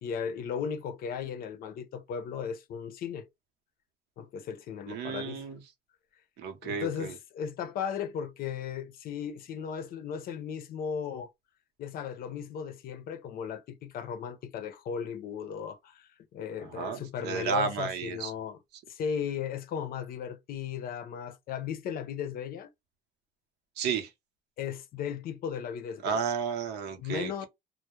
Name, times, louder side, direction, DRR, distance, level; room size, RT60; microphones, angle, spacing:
voice 1, 0.0-3.3 4.2-5.5 6.6-11.3 11.8-18.6 18.9-22.7 24.6-26.2 26.9-27.5, left 7 dB, 60° left, 0.5 m, -36 dB
voice 2, 4.9-5.6 6.4-7.1 16.6-18.3 23.8-24.1 26.0-27.5, right 6 dB, 80° right, 0.7 m, -32 dB
2.2 x 2.0 x 2.9 m
cardioid pair, 110°, 17 cm